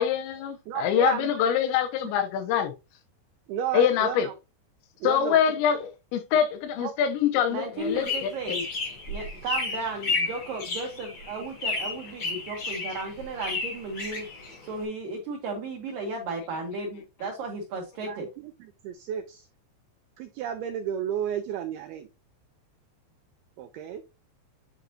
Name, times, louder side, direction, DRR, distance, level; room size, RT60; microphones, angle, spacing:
voice 1, 0.0-2.7 3.7-4.3 5.0-8.3, left 8 dB, 90° left, 3.1 m, -24 dB
voice 2, 0.7-1.4 2.0-2.1 3.5-4.4 5.0-5.6 6.8-6.9 18.0-19.5 20.2-22.1 23.6-24.0, right 10 dB, 85° right, 2.2 m, -33 dB
voice 3, 7.5-8.6 9.1-14.3 14.6-18.3, right 3 dB, 65° right, 2.4 m, -34 dB
sound 1, 7.8-14.8, left 3 dB, 55° left, 1.3 m, -32 dB
9.3 x 3.9 x 2.7 m
omnidirectional pair, 5.1 m